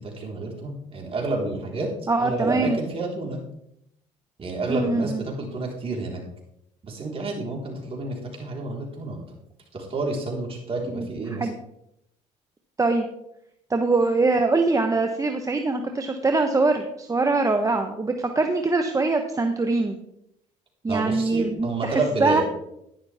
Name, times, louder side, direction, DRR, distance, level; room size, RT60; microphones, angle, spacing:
voice 1, 0.0-1.9 2.2-3.4 4.4-6.2 6.8-9.2 9.7-11.5 20.9-22.4, right 2 dB, 40° right, 0 dB, 4.1 m, -29 dB
voice 2, 2.1-2.8 4.7-5.2 10.9-11.5 12.8-13.1 13.7-20.0 20.8-22.4, right 3 dB, 20° right, 6 dB, 1.0 m, -23 dB
11.5 x 10.5 x 3.5 m, 0.78 s
supercardioid pair, 80°, 15 cm